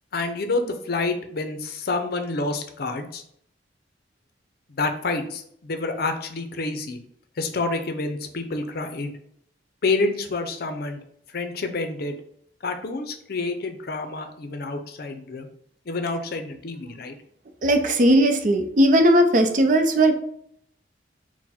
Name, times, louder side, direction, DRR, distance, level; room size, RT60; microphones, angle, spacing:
voice 1, 0.1-3.2 4.7-7.0 7.4-9.2 9.8-11.0 11.3-12.2 12.6-15.5 15.9-17.2, left 3 dB, 60° left, 6 dB, 0.5 m, -28 dB
voice 2, 17.6-20.2, right 1 dB, 45° right, 6 dB, 0.5 m, -18 dB
4.3 x 2.1 x 4.2 m, 0.68 s
head